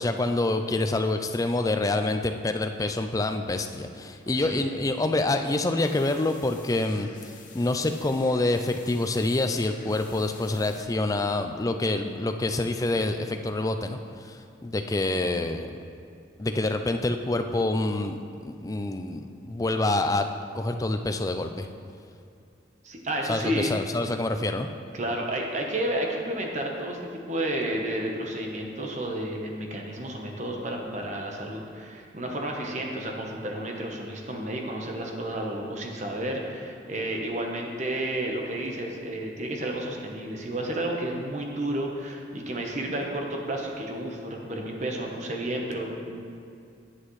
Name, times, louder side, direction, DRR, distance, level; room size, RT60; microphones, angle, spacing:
voice 1, 0.0-7.1 7.5-15.7 16.4-20.3 20.5-21.7 23.3-24.7, left 2 dB, 20° left, 7 dB, 0.4 m, -27 dB
voice 2, 4.3-4.7 22.8-23.7 24.9-27.0 27.3-46.2, right 1 dB, 40° right, 1 dB, 1.0 m, -31 dB
sound 1, 5.7-10.8, left 5 dB, 45° left, 0.9 m, -50 dB
9.9 x 8.4 x 3.2 m, 2.5 s
head